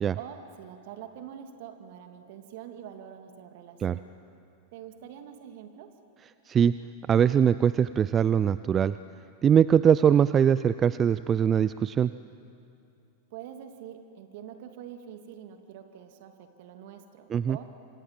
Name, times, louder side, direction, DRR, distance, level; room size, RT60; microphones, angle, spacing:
voice 1, 0.2-4.2 4.7-5.9 13.3-17.6, right 9 dB, 60° right, 6 dB, 2.6 m, -45 dB
voice 2, 7.1-9.0 9.4-12.1 17.3-17.6, right 8 dB, 30° right, 15 dB, 0.5 m, -22 dB
29.0 x 26.0 x 7.7 m, 2.7 s
hypercardioid pair, 95°, 0 cm